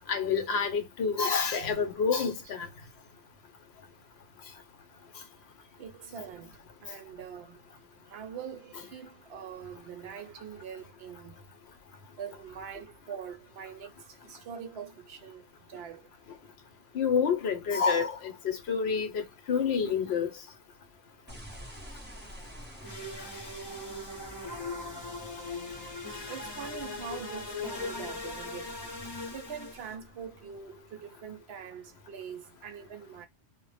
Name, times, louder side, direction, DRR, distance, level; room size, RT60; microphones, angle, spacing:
voice 1, 0.1-2.7 16.9-20.3, left 6 dB, 70° left, 0.9 m, -28 dB
voice 2, 5.8-7.6 8.1-11.4 12.2-15.4 15.7-16.1 26.3-28.8 29.3-33.3, right 7 dB, 70° right, 0.8 m, -43 dB
sound 1, 21.3-30.7, equal, 10° right, 0.6 m, -49 dB
sound 2, 22.8-29.9, left 3 dB, 25° left, 0.7 m, -39 dB
2.1 x 2.0 x 3.1 m
omnidirectional pair, 1.2 m